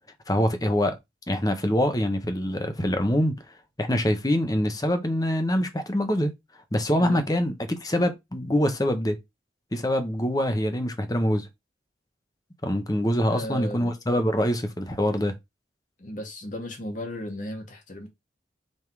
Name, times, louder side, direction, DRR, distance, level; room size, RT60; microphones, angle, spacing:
voice 1, 0.3-1.0 1.3-3.4 3.8-6.3 6.7-9.2 9.7-11.5 12.6-15.3, equal, 20° left, 1.0 m, -24 dB
voice 2, 13.3-13.9 16.0-18.1, left 1 dB, 45° left, 1.9 m, -35 dB
5.4 x 3.8 x 4.7 m
head